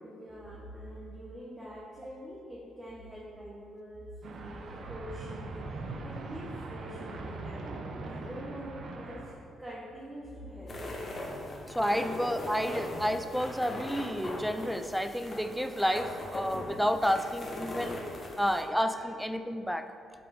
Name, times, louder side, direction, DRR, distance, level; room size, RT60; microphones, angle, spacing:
voice 1, 0.0-4.1 4.4-5.6 6.0-7.6 8.0-9.3 9.6-10.8 12.4-12.5 18.9-19.0, equal, 15° right, -5 dB, 1.1 m, -44 dB
sound 1, 4.2-9.3, right 3 dB, 60° right, 0.6 m, -41 dB
sound 2, 10.7-18.6, left 1 dB, 35° left, 1.0 m, -40 dB
voice 2, 11.3-18.0 18.4-19.8, equal, ahead, 8 dB, 0.3 m, -30 dB
7.7 x 3.8 x 3.5 m, 2.4 s
cardioid pair, 90°, 0 cm